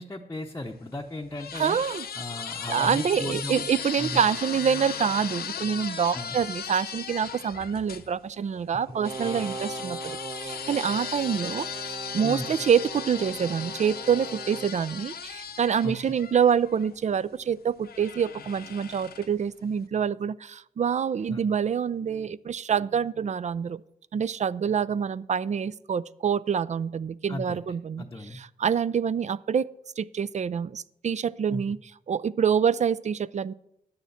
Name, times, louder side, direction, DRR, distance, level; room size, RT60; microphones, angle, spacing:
voice 1, 0.0-1.8 2.1-3.7 4.0-4.2 6.1-6.4 9.2-9.5 12.2-12.5 15.8-15.9 21.3-21.5 27.3-27.6 28.0-28.4 31.5-31.6, left 1 dB, 20° left, 0 dB, 0.7 m, -36 dB
sound 1, 0.7-8.1 9.0-17.0 17.8-19.4, left 7 dB, 80° left, 0.7 m, -37 dB
voice 2, 1.5-2.1 2.7-23.8 24.1-28.1 28.3-29.7 30.0-31.8 32.1-33.5, right 7 dB, 50° right, 19 dB, 0.4 m, -26 dB
Brass instrument, 8.9-14.8, right 3 dB, 30° right, 1.1 m, -39 dB
9.2 x 6.8 x 7.0 m, 0.79 s
cardioid pair, 75°, 16 cm